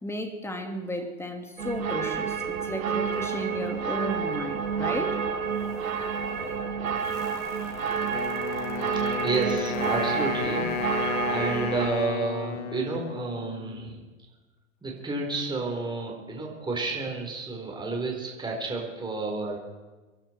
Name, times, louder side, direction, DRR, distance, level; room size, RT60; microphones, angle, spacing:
voice 1, 0.0-5.2, equal, 5° left, 5 dB, 2.4 m, -34 dB
sound 1, 1.6-11.9, right 7 dB, 75° right, 2.9 m, -29 dB
sound 2, 2.9-11.7, left 4 dB, 30° left, 3.8 m, -45 dB
Wind instrument woodwind instrument, 8.1-14.1, left 9 dB, 50° left, 1.6 m, -33 dB
voice 2, 9.0-14.0 14.8-19.6, right 3 dB, 10° right, 0 dB, 4.2 m, -31 dB
25.0 x 11.5 x 4.6 m, 1.2 s
hypercardioid pair, 110°, 41 cm